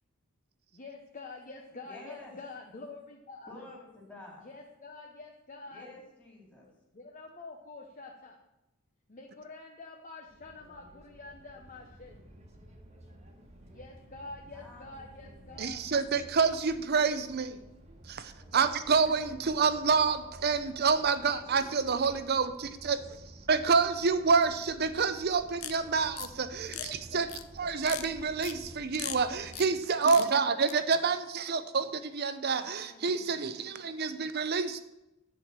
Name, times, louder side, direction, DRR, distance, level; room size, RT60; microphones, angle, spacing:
voice 1, 0.7-3.7 4.4-6.0 6.9-8.4 9.1-12.2 13.7-15.9 18.5-18.7 26.7-27.3 30.4-30.6, left 3 dB, 35° left, 0 dB, 0.9 m, -47 dB
voice 2, 1.8-2.3 3.5-4.5 5.7-6.7 14.5-15.7 29.0-30.1 32.6-33.6, left 2 dB, 5° left, -4 dB, 2.6 m, -51 dB
sound 1, 10.3-29.6, right 1 dB, 30° right, 1.4 m, -52 dB
voice 3, 15.6-17.6 18.1-23.0 23.5-26.8 27.1-27.3 27.6-34.8, right 5 dB, 50° right, 12 dB, 0.6 m, -28 dB
sound 2, 25.6-25.7 26.2-26.3 26.7-26.9 27.3-27.4 27.8-28.0 28.4-28.5 28.9-29.2 29.5-29.7 30.0-30.3 30.7-30.8, left 13 dB, 80° left, 0.6 m, -38 dB
10.0 x 5.1 x 7.3 m, 0.91 s
head